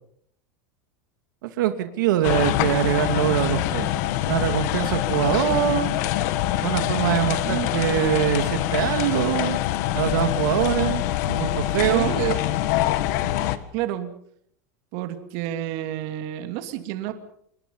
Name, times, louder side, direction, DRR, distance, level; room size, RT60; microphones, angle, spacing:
voice 1, 1.4-3.9 4.3-5.9 6.6-9.6 9.9-11.0 11.4-12.2, right 11 dB, 85° right, 8 dB, 2.4 m, -23 dB
sound 1, 2.2-13.6, left 14 dB, 60° left, 1.7 m, -24 dB
voice 2, 6.3-6.6 7.4-7.7 11.2-12.4 13.7-14.1 14.9-17.1, right 12 dB, 55° right, 7 dB, 2.7 m, -30 dB
26.5 x 22.0 x 5.6 m, 0.67 s
supercardioid pair, 155°, 10 cm